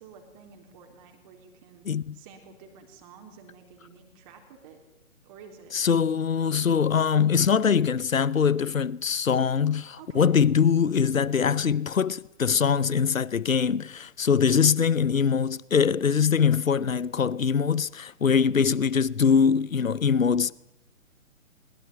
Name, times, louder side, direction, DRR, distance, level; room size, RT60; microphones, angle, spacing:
voice 1, 0.0-1.8 2.1-4.8 5.2-5.7 10.0-10.3, right 6 dB, 25° right, 3.9 m, -50 dB
voice 2, 1.9-2.2 5.7-20.5, left 6 dB, 75° left, 0.8 m, -23 dB
22.5 x 21.5 x 9.7 m
figure-of-eight pair, 135°, 40 cm